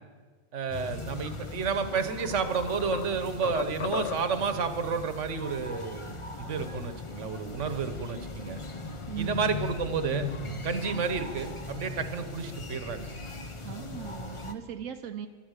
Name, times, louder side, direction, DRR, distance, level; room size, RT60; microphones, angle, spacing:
voice 1, 0.5-8.6 9.2-10.3 10.6-13.1, right 5 dB, 70° right, 9 dB, 1.4 m, -31 dB
sound 1, 0.7-14.5, left 3 dB, 25° left, 0.9 m, -39 dB
sound 2, 1.3-1.5 1.9-4.5, left 9 dB, 65° left, 0.8 m, -37 dB
voice 2, 9.1-9.6 13.6-15.3, right 8 dB, 90° right, 5 dB, 1.2 m, -38 dB
13.0 x 11.5 x 8.1 m, 1.5 s
omnidirectional pair, 1.3 m